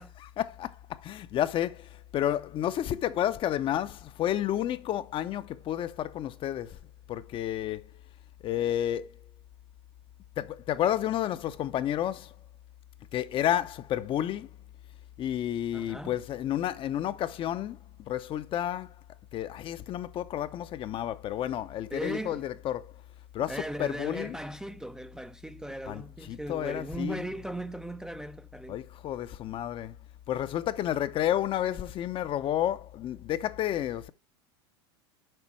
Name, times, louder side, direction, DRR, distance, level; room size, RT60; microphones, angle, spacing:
voice 1, 0.2-6.8 7.1-7.9 8.4-9.1 10.4-12.3 13.1-14.5 15.2-18.9 19.3-22.8 23.3-24.4 25.9-27.2 28.7-29.9 30.3-34.1, left 11 dB, 35° left, 0.7 m, -31 dB
voice 2, 15.7-16.1 21.9-22.4 23.5-28.8, right 1 dB, 5° right, 0.5 m, -38 dB
7.7 x 5.1 x 4.6 m
hypercardioid pair, 100°, 14 cm